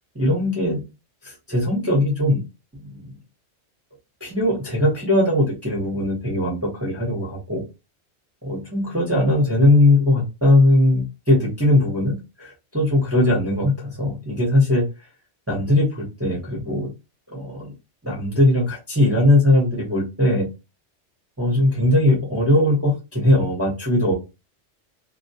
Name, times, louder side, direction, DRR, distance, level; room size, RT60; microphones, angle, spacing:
voice 1, 0.1-0.8 1.2-2.4 2.8-3.0 4.2-7.6 8.4-14.8 15.5-16.9 17.3-17.7 18.0-20.5 21.4-24.1, left 1 dB, 15° right, -5 dB, 0.6 m, -20 dB
2.2 x 2.2 x 2.7 m, 0.27 s
omnidirectional pair, 1.2 m